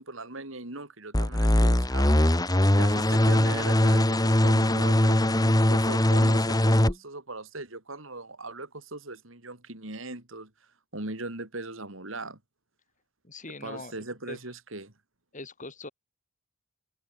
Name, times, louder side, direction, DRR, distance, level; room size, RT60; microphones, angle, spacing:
voice 1, 0.0-10.5 10.9-12.4 13.6-14.9, right 2 dB, 70° right, 4.1 m, -39 dB
sound 1, 1.1-6.9, left 1 dB, 20° left, 1.5 m, -21 dB
voice 2, 13.2-14.0 14.3-14.4 15.3-15.9, left 2 dB, 40° left, 7.7 m, -41 dB
head